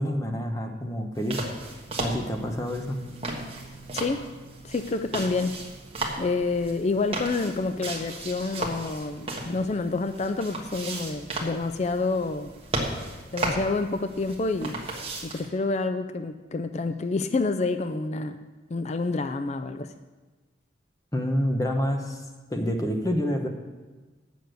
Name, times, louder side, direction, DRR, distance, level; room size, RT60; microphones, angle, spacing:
voice 1, 0.0-1.4 2.0-3.0 21.1-22.2 22.5-23.5, equal, 20° left, 4 dB, 0.8 m, -27 dB
sound 1, 1.2-15.5, right 2 dB, 30° right, 1.4 m, -35 dB
sound 2, 2.8-7.8, right 2 dB, 50° left, 1.8 m, -50 dB
voice 2, 4.6-5.6 6.2-12.5 13.3-14.8 15.2-19.9, left 3 dB, 35° left, 8 dB, 0.4 m, -28 dB
8.3 x 6.9 x 7.7 m, 1.2 s
head